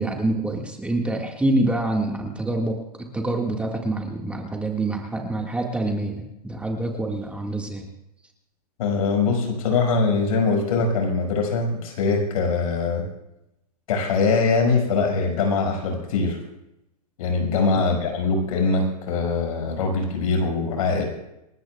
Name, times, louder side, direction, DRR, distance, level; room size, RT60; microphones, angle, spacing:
voice 1, 0.0-7.9 17.8-17.9, right 2 dB, 5° right, 1 dB, 1.9 m, -26 dB
voice 2, 8.8-13.1 13.9-16.4 17.2-21.0, left 4 dB, 65° left, 2 dB, 6.0 m, -22 dB
28.5 x 13.5 x 2.4 m, 0.86 s
hypercardioid pair, 135°, 20 cm